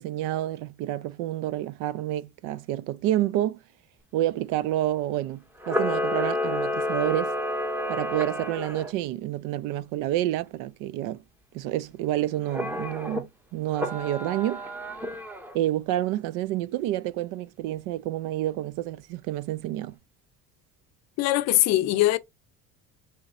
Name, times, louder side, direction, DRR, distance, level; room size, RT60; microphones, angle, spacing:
voice 1, 0.0-3.6 4.1-7.3 7.9-11.2 11.5-14.7 15.5-20.0, right 13 dB, 80° right, 0.5 m, -29 dB
Camera, 5.6-8.9 12.5-13.2 13.7-15.6, left 1 dB, 5° right, 0.7 m, -30 dB
voice 2, 21.2-22.2, left 15 dB, 60° left, 0.5 m, -21 dB
4.9 x 2.8 x 2.5 m
cardioid pair, 130°, 31 cm